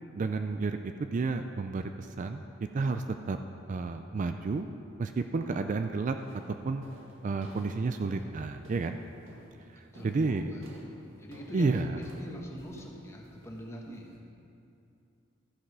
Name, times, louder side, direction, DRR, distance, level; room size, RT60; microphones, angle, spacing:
voice 1, 0.1-2.4 2.7-3.4 3.7-4.7 5.0-6.2 6.5-6.8 7.2-9.0 9.7-10.5 11.5-12.0, right 4 dB, 40° right, 7 dB, 0.3 m, -31 dB
sound 1, 5.3-5.7 6.2-14.2, equal, 90° right, 1.5 m, -53 dB
voice 2, 9.9-10.8 11.2-14.2, equal, 15° left, -1 dB, 1.1 m, -43 dB
13.5 x 5.9 x 5.5 m, 2.6 s
head